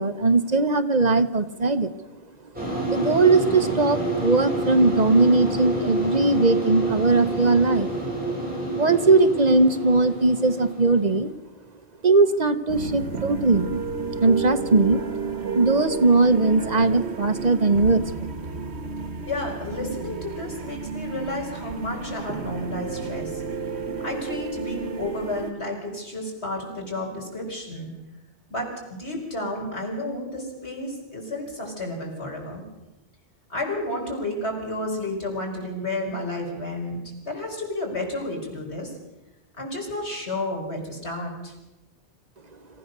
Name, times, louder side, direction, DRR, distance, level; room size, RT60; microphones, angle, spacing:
voice 1, 0.0-1.9 2.8-7.9 8.7-11.3 12.0-13.8 14.2-15.0 15.5-18.3, right 3 dB, 40° right, 10 dB, 1.0 m, -20 dB
sound 1, 2.5-11.2, right 1 dB, 10° right, 7.9 m, -28 dB
sound 2, 12.7-25.5, right 5 dB, 80° right, 1.6 m, -32 dB
voice 2, 19.3-23.4 24.0-27.9 28.5-32.6 33.5-37.0 37.3-38.9 39.6-41.5, left 1 dB, 85° left, 0 dB, 5.9 m, -31 dB
26.5 x 15.0 x 6.7 m, 1.0 s
omnidirectional pair, 1.1 m